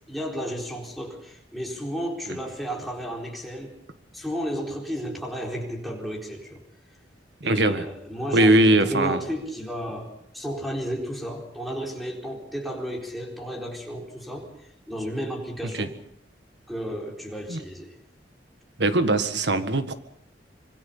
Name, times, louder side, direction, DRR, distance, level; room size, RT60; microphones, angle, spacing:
voice 1, 0.1-3.7 4.1-6.6 7.4-15.9 16.7-17.9, equal, ahead, -1 dB, 4.2 m, -33 dB
voice 2, 7.4-7.9 8.3-9.2 15.7-15.9 17.5-17.6 18.8-19.9, right 1 dB, 70° right, 10 dB, 1.7 m, -20 dB
25.5 x 23.0 x 5.6 m, 0.69 s
head